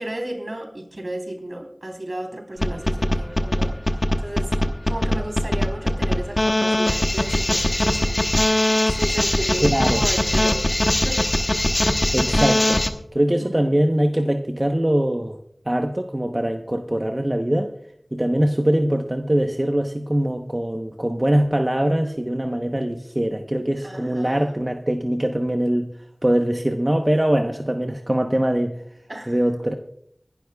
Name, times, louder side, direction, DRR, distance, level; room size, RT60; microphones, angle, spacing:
voice 1, 0.0-3.8 4.2-4.5 4.9-8.2 8.9-10.6 10.9-11.2 13.4-13.9 23.8-24.5 29.1-29.4, right 1 dB, 60° right, 2 dB, 3.5 m, -33 dB
sound 1, 2.6-12.9, left 1 dB, 40° left, 1.1 m, -20 dB
voice 2, 9.6-10.0 12.1-12.8 13.1-15.4 15.7-17.7 18.1-25.9 26.2-28.8 29.3-29.7, right 1 dB, 25° right, 3 dB, 0.9 m, -22 dB
25.0 x 11.5 x 2.3 m, 0.70 s
wide cardioid pair, 50°, 0 cm